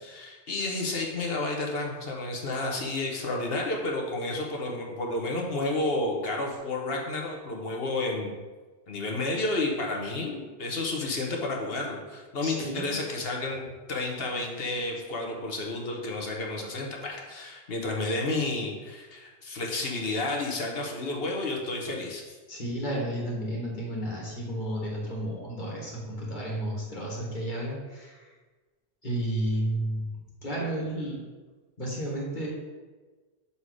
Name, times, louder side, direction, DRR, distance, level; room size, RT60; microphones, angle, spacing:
voice 1, 0.0-8.3 8.9-22.4, left 2 dB, 60° left, 0 dB, 1.2 m, -31 dB
voice 2, 12.4-13.0 22.5-28.2 29.0-30.1 30.4-31.2 31.8-32.5, right 1 dB, 45° left, -4 dB, 1.9 m, -32 dB
6.8 x 4.1 x 4.7 m, 1.3 s
omnidirectional pair, 1.1 m